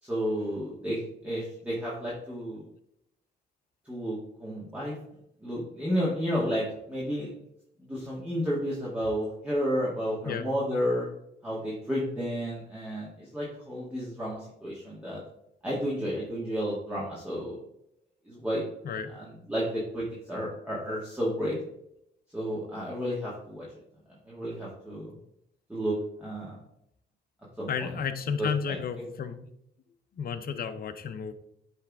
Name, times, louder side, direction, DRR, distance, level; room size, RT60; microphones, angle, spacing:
voice 1, 0.0-2.6 3.9-4.9 5.4-7.3 7.8-11.1 11.4-15.2 15.6-17.6 18.3-18.7 19.1-21.5 22.3-23.7 24.3-25.2 25.7-26.6 27.6-28.0 28.4-29.1, equal, 5° right, -7 dB, 2.1 m, -32 dB
voice 2, 27.7-29.5 30.2-31.3, left 6 dB, 50° left, 8 dB, 0.7 m, -32 dB
9.7 x 3.4 x 3.6 m, 0.77 s
cardioid pair, 90°, 20 cm